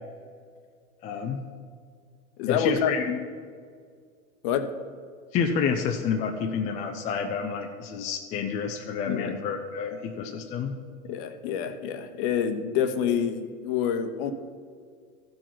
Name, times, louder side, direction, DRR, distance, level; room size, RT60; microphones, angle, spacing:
voice 1, 1.0-1.4 2.5-3.2 5.3-10.7, left 6 dB, 20° left, 3 dB, 0.4 m, -29 dB
voice 2, 2.4-2.9 4.4-4.7 9.1-9.4 11.0-14.3, left 8 dB, 45° left, 9 dB, 0.9 m, -27 dB
14.5 x 5.1 x 5.6 m, 2.1 s
supercardioid pair, 135°, 39 cm